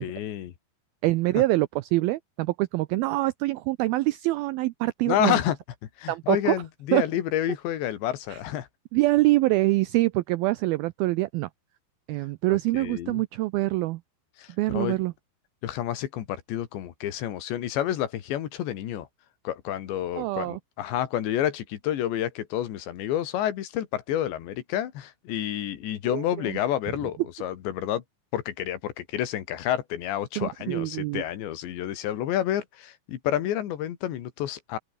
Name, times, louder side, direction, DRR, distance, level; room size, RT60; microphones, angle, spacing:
voice 1, 0.0-0.5 1.4-1.5 5.1-5.6 6.0-8.7 12.5-13.2 14.4-15.0 15.6-19.1 19.5-28.0 28.3-34.8, left 11 dB, 85° left, 4.3 m, -29 dB
voice 2, 1.0-5.4 6.1-6.6 6.9-7.0 8.3-8.4 8.9-11.5 12.1-14.0 14.6-15.1 20.2-20.6 26.1-26.6 30.4-31.2, right 19 dB, 90° right, 2.1 m, -25 dB
open air
omnidirectional pair, 5.0 m